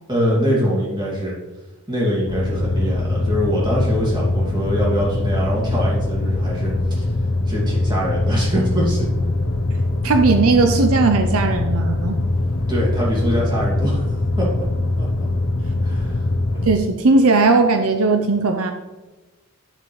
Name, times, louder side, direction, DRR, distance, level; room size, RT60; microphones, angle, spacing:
voice 1, 0.1-1.3 1.9-7.1 7.4-9.3 12.7-14.5 15.0-15.3 15.8-16.2 16.5-16.8, equal, 20° right, -5 dB, 2.5 m, -23 dB
sound 1, 2.3-16.7, left 2 dB, 65° left, 0.9 m, -22 dB
voice 2, 10.0-12.2 16.7-18.7, right 3 dB, 75° right, 6 dB, 0.6 m, -17 dB
9.5 x 6.7 x 3.2 m, 1.2 s
head